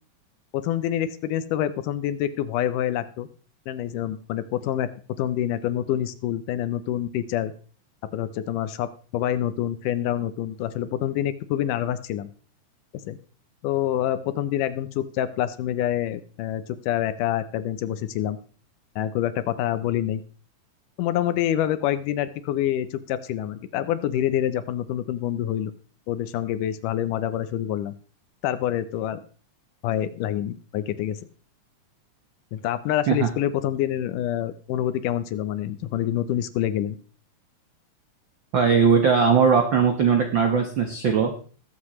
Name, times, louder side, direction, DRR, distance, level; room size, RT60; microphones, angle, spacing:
voice 1, 0.5-3.3 3.7-4.9 5.2-7.5 8.1-8.9 9.1-12.3 13.1-13.2 13.6-18.4 19.0-20.2 21.0-25.7 26.1-27.9 28.4-29.2 29.8-31.2 32.5-37.0, left 11 dB, 80° left, 13 dB, 2.2 m, -26 dB
voice 2, 38.5-41.3, right 6 dB, 75° right, 4 dB, 1.1 m, -19 dB
20.5 x 7.7 x 3.1 m, 0.41 s
omnidirectional pair, 3.8 m